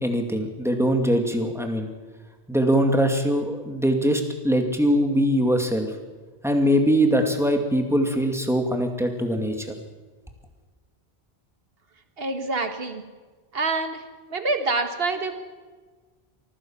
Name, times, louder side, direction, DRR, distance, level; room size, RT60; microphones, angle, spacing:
voice 1, 0.0-1.9 2.5-5.9 6.4-9.7, equal, ahead, 4 dB, 2.3 m, -22 dB
voice 2, 12.2-13.0 13.5-14.0 14.3-15.3, right 3 dB, 65° right, 7 dB, 1.9 m, -26 dB
24.0 x 15.5 x 7.3 m, 1.4 s
omnidirectional pair, 1.1 m